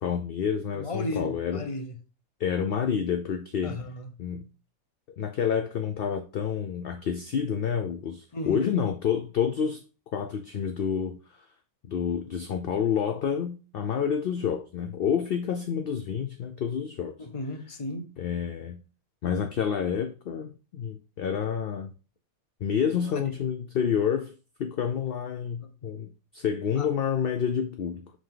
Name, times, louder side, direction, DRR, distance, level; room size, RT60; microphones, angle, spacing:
voice 1, 0.0-1.6 2.4-3.8 4.2-4.4 5.2-9.8 10.1-11.4 11.9-17.2 18.2-18.8 19.2-21.9 22.6-24.3 24.6-26.1 26.3-28.1, left 7 dB, 60° left, 0.6 m, -28 dB
voice 2, 0.7-1.9 3.6-4.1 8.3-8.8 17.2-18.1 23.1-23.3 25.6-25.7 26.8-26.9, left 2 dB, 25° left, 0.8 m, -35 dB
5.9 x 5.1 x 3.8 m
omnidirectional pair, 1.5 m